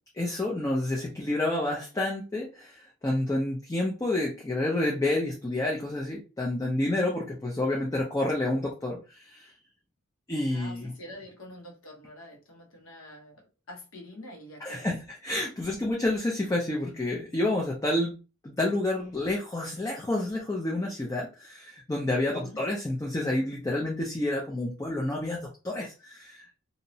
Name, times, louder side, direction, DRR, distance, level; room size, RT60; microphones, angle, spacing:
voice 1, 0.2-9.5 10.3-10.9 14.6-18.2 18.4-26.5, left 1 dB, 15° left, 0.3 m, -29 dB
voice 2, 10.5-14.9 22.3-22.6, left 1 dB, 70° left, 0.9 m, -46 dB
2.7 x 2.0 x 2.6 m
head